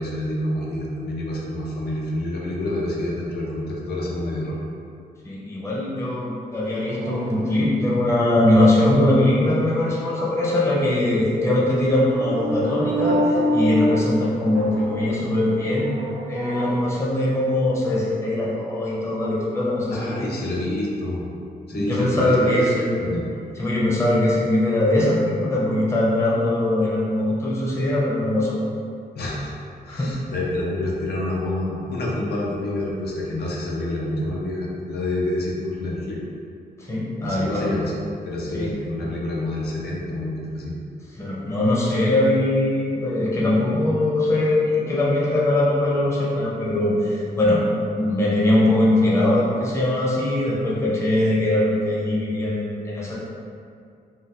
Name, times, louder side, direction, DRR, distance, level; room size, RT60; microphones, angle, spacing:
voice 1, 0.0-4.6 19.9-21.2 21.7-23.2 29.2-29.5 29.8-36.2 37.2-37.9 38.2-40.7, left 1 dB, 90° left, -4 dB, 0.6 m, -28 dB
voice 2, 5.2-16.0 16.3-20.3 21.7-23.0 23.6-28.6 29.9-30.1 36.8-37.7 38.5-38.7 41.2-47.6 47.9-53.2, left 1 dB, 15° left, -6 dB, 0.5 m, -21 dB
sound 1, 6.6-8.0 11.9-17.5, equal, 70° right, 0.4 m, -27 dB
2.7 x 2.2 x 3.5 m, 2.3 s
wide cardioid pair, 165°, 16 cm